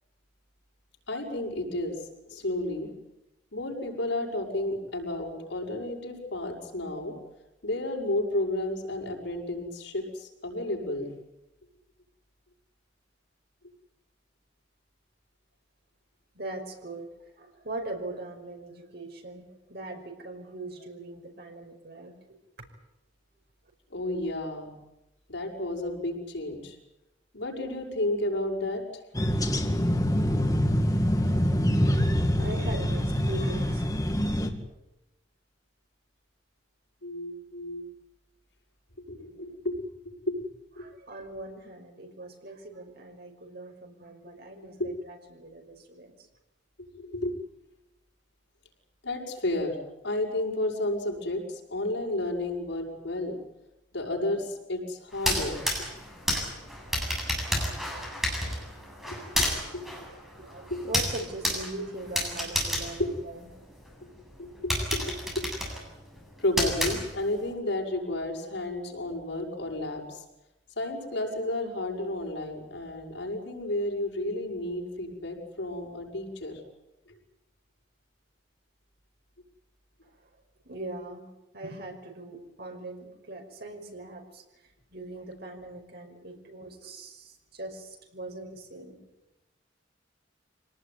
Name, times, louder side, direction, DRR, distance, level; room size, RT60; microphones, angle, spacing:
voice 1, 1.1-2.0 2.3-2.9 3.5-7.2 7.6-11.1 23.9-24.7 25.3-26.8 27.3-28.8 37.0-37.9 39.1-40.5 40.8-40.9 44.8-44.9 46.9-47.4 49.0-49.8 50.0-53.4 53.9-55.6 59.1-59.5 59.7-59.9 60.7-60.9 63.0-63.2 64.4-65.5 66.4-70.2 70.8-76.6, left 1 dB, 85° left, 0 dB, 6.7 m, -32 dB
voice 2, 16.3-22.4 32.2-33.8 40.8-46.1 60.4-63.5 80.7-84.4 84.9-89.0, right 2 dB, 60° right, 3 dB, 5.5 m, -41 dB
sound 1, 29.1-34.5, equal, 20° left, 2.2 m, -25 dB
sound 2, 55.1-63.9 64.3-64.4 64.7-67.5, equal, ahead, 7.8 m, -31 dB
25.5 x 18.5 x 9.8 m, 0.93 s
head